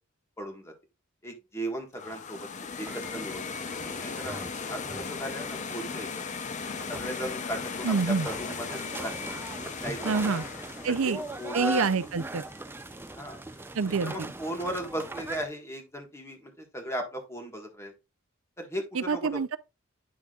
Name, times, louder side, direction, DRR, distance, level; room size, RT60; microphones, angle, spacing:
voice 1, 0.4-0.7 1.2-2.5 2.8-3.5 3.8-4.4 4.7-6.1 6.9-9.1 9.8-10.4 10.9-11.8 13.1-13.4 13.9-17.9 18.6-19.4, equal, 15° left, 1.6 m, -37 dB
sound 1, 1.9-12.9, left 5 dB, 35° left, 0.6 m, -38 dB
sound 2, 2.8-15.4, right 1 dB, 10° right, 0.4 m, -40 dB
voice 2, 7.8-8.3 10.0-10.4 10.8-11.2 11.5-12.4 13.8-14.1 18.9-19.6, right 5 dB, 70° right, 0.5 m, -26 dB
9.5 x 6.0 x 2.4 m
head